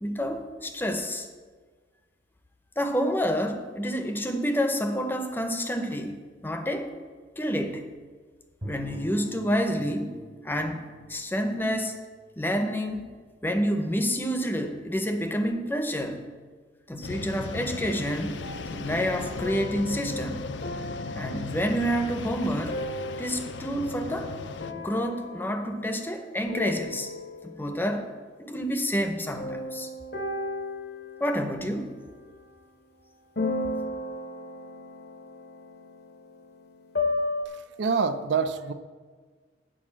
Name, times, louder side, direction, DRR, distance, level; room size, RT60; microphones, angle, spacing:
voice 1, 0.0-1.3 2.8-6.9 7.4-7.9 8.6-10.2 10.4-12.0 12.4-13.1 13.4-16.2 16.9-18.4 18.7-20.4 21.1-22.8 23.2-24.3 24.7-27.1 27.4-28.1 28.4-29.9 31.2-32.0, equal, 10° left, 6 dB, 0.6 m, -28 dB
Bowed string instrument, 8.6-12.8, equal, 30° right, 0.9 m, -46 dB
sound 1, 17.0-24.7, left 3 dB, 85° left, 0.5 m, -37 dB
sound 2, 18.4-23.9 24.6-26.2 26.5-27.7 29.4-32.4 33.4-37.5, left 2 dB, 60° left, 0.8 m, -35 dB
voice 2, 37.5-38.7, right 5 dB, 75° right, 10 dB, 0.5 m, -27 dB
8.7 x 5.0 x 7.2 m, 1.5 s
head